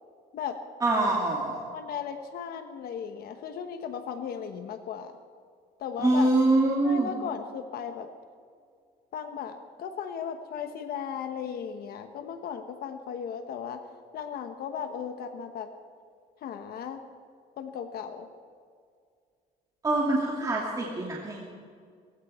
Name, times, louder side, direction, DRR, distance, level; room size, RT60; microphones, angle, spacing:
voice 1, 0.8-1.6 6.0-7.1 19.8-21.5, right 2 dB, 20° right, -3 dB, 2.5 m, -24 dB
voice 2, 1.7-5.1 5.8-6.3 6.8-8.1 9.1-13.8 14.1-15.7 16.4-17.0 17.6-18.3, left 7 dB, 65° left, 7 dB, 1.2 m, -36 dB
20.0 x 15.5 x 4.4 m, 2.1 s
cardioid pair, 110°, 17 cm